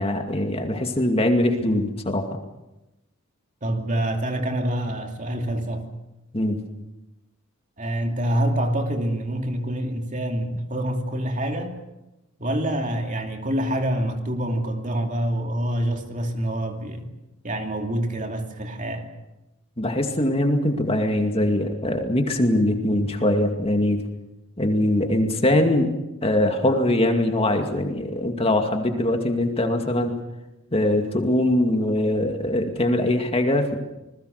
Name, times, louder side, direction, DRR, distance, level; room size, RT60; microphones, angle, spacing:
voice 1, 0.0-2.4 6.3-6.6 19.8-24.0 24.6-25.9 26.2-30.1 30.7-33.8, left 1 dB, 25° left, 2.3 m, -22 dB
voice 2, 3.6-5.9 7.8-11.8 12.4-17.1 17.4-19.1, right 1 dB, 35° right, 2.6 m, -26 dB
27.0 x 20.5 x 6.7 m
head